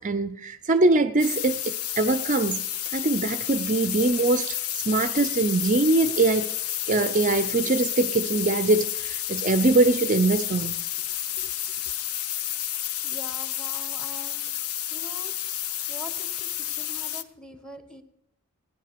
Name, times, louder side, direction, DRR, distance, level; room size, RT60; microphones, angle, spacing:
voice 1, 0.0-6.5 6.9-10.7, right 2 dB, 35° right, 0.5 m, -23 dB
sound 1, 1.2-17.2, left 11 dB, 75° left, 0.7 m, -31 dB
voice 2, 13.0-14.4 14.9-15.3 15.9-18.0, equal, 5° left, 1.2 m, -43 dB
16.0 x 10.0 x 6.8 m
head